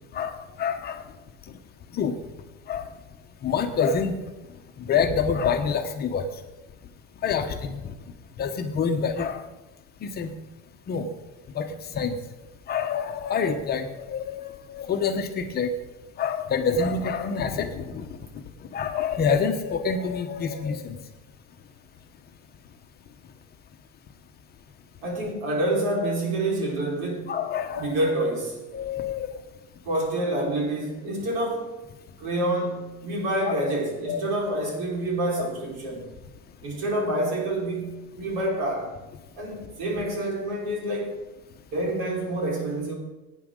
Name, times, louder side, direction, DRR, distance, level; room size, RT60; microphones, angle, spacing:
voice 1, 0.1-1.0 1.9-2.1 2.7-2.9 3.4-4.2 4.8-6.2 7.2-7.8 8.4-9.4 10.0-10.3 10.9-11.1 11.5-11.6 11.9-12.2 12.7-15.7 16.2-18.0 18.7-21.0 27.3-28.1 28.7-29.3 33.5-33.6 34.1-34.6 35.4-35.5, left 6 dB, 30° left, 1.0 m, -27 dB
voice 2, 25.0-27.3 27.8-28.6 29.8-31.7 32.2-36.1 36.6-39.0 39.4-41.2 41.7-43.0, right 1 dB, 75° right, 4.5 m, -27 dB
18.0 x 9.2 x 3.8 m
cardioid pair, 155°, 30 cm